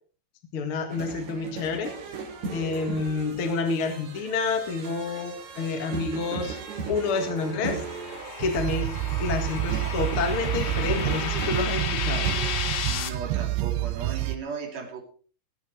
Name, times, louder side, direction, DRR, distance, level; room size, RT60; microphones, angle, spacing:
voice 1, 0.5-1.9 2.5-6.6 6.9-7.8 8.4-8.9 9.2-12.3, left 4 dB, 50° left, 6 dB, 1.6 m, -28 dB
sound 1, 0.9-12.8, right 4 dB, 65° right, 4.4 m, -37 dB
sound 2, 6.3-13.1, left 9 dB, 70° left, 2.8 m, -34 dB
sound 3, 8.4-14.4, right 17 dB, 80° right, 2.1 m, -29 dB
voice 2, 12.9-15.0, right 5 dB, 40° right, 2 dB, 3.6 m, -36 dB
19.0 x 9.1 x 4.7 m, 0.41 s
omnidirectional pair, 5.2 m